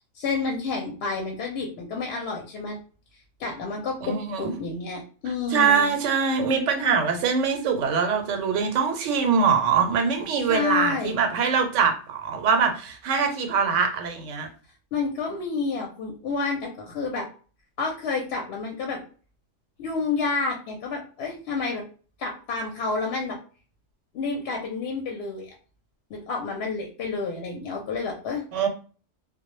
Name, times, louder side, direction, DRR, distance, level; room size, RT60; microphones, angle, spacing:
voice 1, 0.1-2.8 3.4-5.9 10.5-11.2 14.9-17.3 17.8-19.0 19.8-21.8 22.2-23.4 24.1-25.5 26.1-28.4, left 4 dB, 65° left, 1 dB, 0.7 m, -29 dB
voice 2, 4.0-4.5 5.5-14.5 28.5-28.7, right 6 dB, 90° right, 5 dB, 0.9 m, -23 dB
2.0 x 2.0 x 3.0 m, 0.38 s
omnidirectional pair, 1.2 m